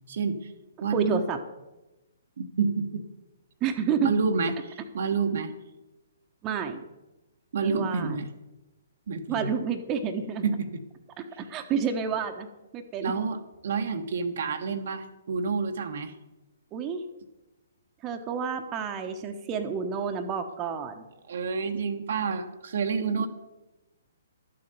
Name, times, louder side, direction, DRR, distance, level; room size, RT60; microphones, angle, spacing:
voice 1, 0.1-0.5 0.8-1.2 2.4-3.1 4.0-5.5 7.5-8.3 9.1-9.5 10.4-10.7 13.0-13.4 13.6-16.1 21.3-23.3, right 5 dB, 55° right, 5 dB, 1.1 m, -28 dB
voice 2, 0.9-1.4 3.6-4.1 6.4-6.8 7.6-8.2 9.3-10.5 11.2-13.1 16.7-17.0 18.0-21.0 23.1-23.3, right 6 dB, 25° right, 5 dB, 1.1 m, -30 dB
12.5 x 7.7 x 6.8 m, 1.0 s
figure-of-eight pair, 125°, 0 cm